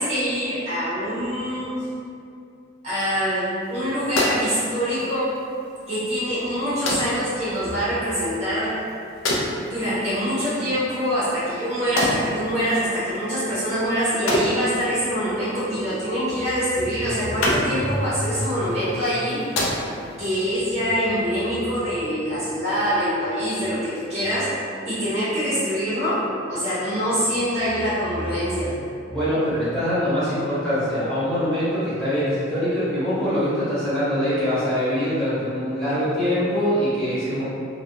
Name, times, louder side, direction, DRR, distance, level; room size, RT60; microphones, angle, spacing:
voice 1, 0.0-1.7 2.8-5.4 5.9-8.9 9.7-19.4 20.2-24.6 24.9-28.7, equal, 35° right, -11 dB, 0.6 m, -24 dB
sound 1, 3.6-20.3, left 1 dB, 85° left, 0.4 m, -31 dB
voice 2, 29.1-37.5, equal, 5° left, -14 dB, 0.8 m, -23 dB
2.3 x 2.1 x 2.7 m, 2.5 s
head